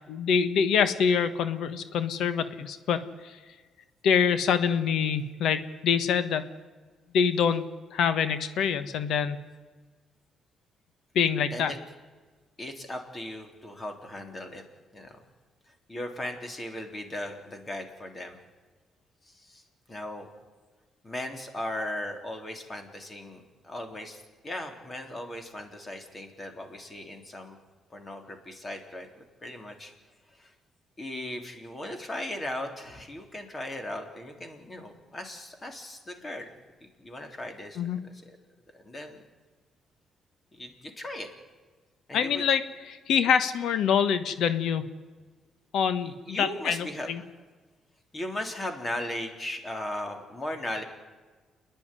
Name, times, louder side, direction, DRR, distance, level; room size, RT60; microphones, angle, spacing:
voice 1, 0.1-3.4 4.0-6.5 7.1-7.6 7.9-9.4 11.1-11.7 37.8-38.0 42.1-44.8 45.7-47.2, left 7 dB, 80° left, 11 dB, 1.4 m, -25 dB
voice 2, 12.6-14.6 14.9-15.2 15.9-18.4 19.3-19.6 19.9-20.3 21.0-27.6 27.9-29.9 30.3-30.5 31.0-36.5 36.8-38.4 38.7-39.2 40.5-41.3 42.1-42.4 46.0-47.1 48.1-50.8, left 1 dB, 25° left, 4 dB, 3.6 m, -37 dB
28.5 x 10.5 x 9.9 m, 1.4 s
cardioid pair, 90°, 0 cm